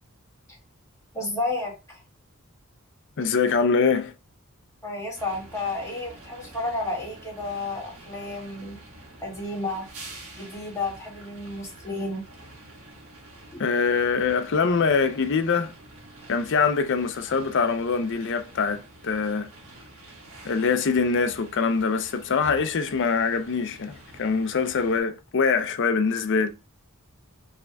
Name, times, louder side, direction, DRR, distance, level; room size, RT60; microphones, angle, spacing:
voice 1, 1.1-2.0 4.8-8.8 9.2-9.9 10.3-12.2 13.5-13.6, left 2 dB, 15° left, 1.9 m, -31 dB
voice 2, 3.2-4.1 13.6-15.7 16.3-19.5 20.4-26.5, left 5 dB, 60° left, 0.5 m, -24 dB
sound 1, 5.2-25.0, right 2 dB, 70° right, 1.5 m, -47 dB
5.0 x 3.3 x 2.3 m
head